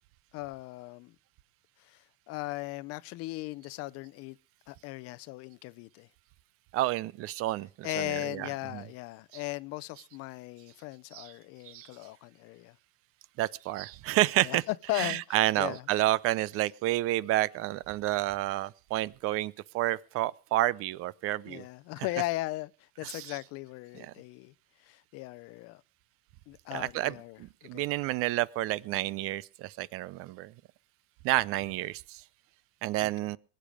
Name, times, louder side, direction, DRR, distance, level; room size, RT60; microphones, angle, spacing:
voice 1, 0.3-1.1 1.9-2.0 2.3-4.4 4.7-6.1 7.8-12.7 14.4-15.8 21.5-22.7 23.0-24.5 24.8-25.8 26.5-28.0 33.0-33.1, left 19 dB, 50° left, 0.7 m, -37 dB
voice 2, 6.7-8.9 9.3-9.4 11.1-11.3 11.7-11.9 13.4-21.6 22.0-22.2 23.0-23.4 24.0-24.1 26.7-30.5 31.2-32.2 32.8-33.4, right 16 dB, 45° right, 0.6 m, -30 dB
20.5 x 9.0 x 5.0 m
supercardioid pair, 110°, 31 cm